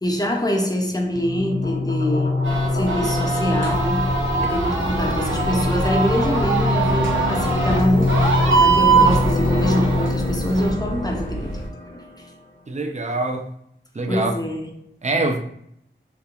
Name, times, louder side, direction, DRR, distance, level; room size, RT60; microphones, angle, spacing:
voice 1, 0.0-8.3 8.6-12.0 14.1-14.8, left 1 dB, 20° left, 0.5 m, -24 dB
sound 1, 1.1-12.1, left 2 dB, 60° left, 1.0 m, -24 dB
sound 2, 2.4-10.7, right 4 dB, 80° right, 0.6 m, -23 dB
sound 3, 3.7-11.7, right 2 dB, 90° left, 1.1 m, -30 dB
voice 2, 12.7-13.4 13.9-14.3 15.0-15.4, right 2 dB, 35° right, 0.4 m, -24 dB
2.9 x 2.1 x 2.4 m
wide cardioid pair, 55°, 20 cm